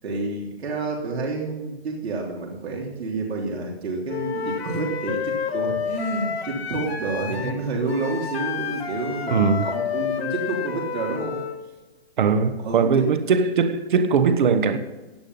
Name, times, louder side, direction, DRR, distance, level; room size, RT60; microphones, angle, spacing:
voice 1, 0.0-11.4 12.6-13.0, right 3 dB, 75° right, -2 dB, 3.3 m, -29 dB
Wind instrument woodwind instrument, 4.1-11.6, left 7 dB, 70° left, 2.0 m, -30 dB
voice 2, 9.3-9.7 12.2-14.8, right 5 dB, 50° right, 10 dB, 1.3 m, -20 dB
16.5 x 9.5 x 5.5 m, 1.2 s
hypercardioid pair, 175°, 32 cm